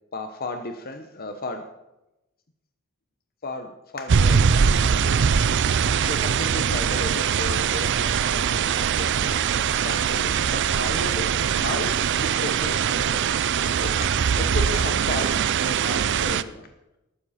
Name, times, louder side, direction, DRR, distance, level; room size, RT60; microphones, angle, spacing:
voice 1, 0.1-1.7 3.4-5.3 5.8-13.5 13.8-16.7, left 2 dB, 45° left, 6 dB, 1.0 m, -35 dB
sound 1, 4.1-16.4, right 7 dB, 55° right, 0.5 m, -22 dB
13.5 x 12.5 x 4.3 m, 0.94 s
head